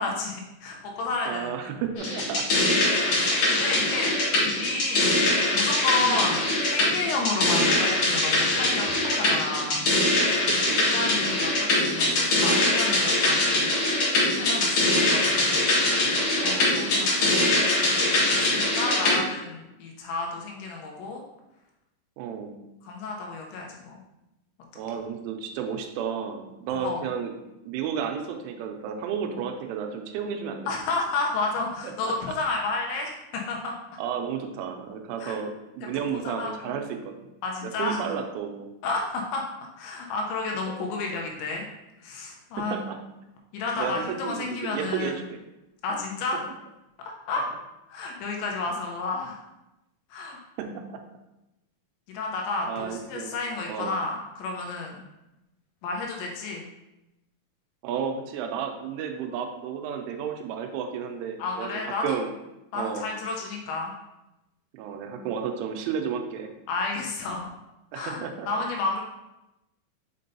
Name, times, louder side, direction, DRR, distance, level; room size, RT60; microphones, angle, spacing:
voice 1, 0.0-1.8 3.0-4.1 4.4-5.2 5.5-9.9 10.5-10.6 10.9-13.7 14.3-15.6 16.1-17.6 17.9-21.2 22.8-23.9 26.8-27.1 30.7-33.8 35.2-35.4 35.9-36.9 37.4-38.0 38.8-39.4 39.8-41.7 42.0-42.8 43.5-45.2 45.8-46.4 47.3-47.5 47.9-49.4 50.1-50.4 52.1-55.0 55.8-56.7 61.4-62.2 62.7-63.9 66.7-67.5 67.9-69.0, left 3 dB, 85° left, 0 dB, 2.9 m, -31 dB
voice 2, 1.3-2.5 6.0-6.3 10.5-11.2 16.4-16.8 18.8-19.2 22.2-22.6 24.8-27.3 27.7-30.6 31.8-32.1 34.0-37.3 37.6-38.7 40.7-40.8 42.6-43.0 43.8-45.4 50.6-51.0 52.7-53.4 53.7-54.0 57.8-62.3 62.7-63.1 64.7-66.5 67.9-68.5, right 7 dB, 85° right, 4 dB, 3.1 m, -32 dB
sound 1, 2.0-19.2, left 2 dB, 60° left, 2.2 m, -23 dB
6.5 x 5.3 x 2.7 m, 0.93 s
omnidirectional pair, 5.6 m